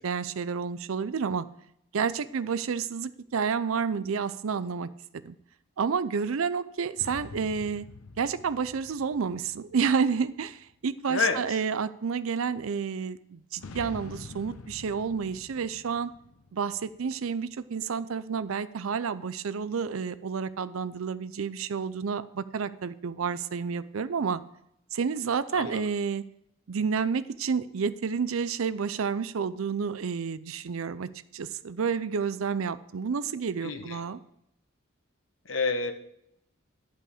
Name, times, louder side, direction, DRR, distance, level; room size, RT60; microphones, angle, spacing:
voice 1, 0.0-1.5 1.9-5.4 5.8-7.9 8.2-16.1 16.5-24.4 24.9-26.2 26.7-34.2, right 6 dB, 80° right, 15 dB, 0.5 m, -30 dB
sound 1, 7.0-10.7 13.6-17.4, left 3 dB, 85° left, 0.7 m, -47 dB
voice 2, 11.1-11.4 25.5-25.8 33.6-34.0 35.5-35.9, left 4 dB, 65° left, 7 dB, 1.0 m, -28 dB
11.0 x 5.6 x 4.9 m, 0.77 s
head